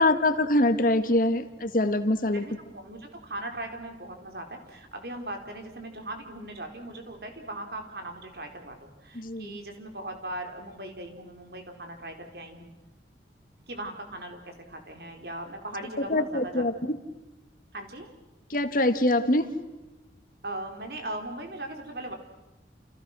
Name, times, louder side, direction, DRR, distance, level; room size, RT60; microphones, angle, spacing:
voice 1, 0.0-2.4 9.1-9.6 16.1-17.0 18.5-19.5, left 1 dB, 50° left, 10 dB, 1.7 m, -24 dB
voice 2, 2.3-12.7 13.7-16.9 17.7-18.1 20.4-22.1, right 1 dB, 60° right, 4 dB, 4.6 m, -39 dB
30.0 x 30.0 x 6.2 m, 1.0 s
head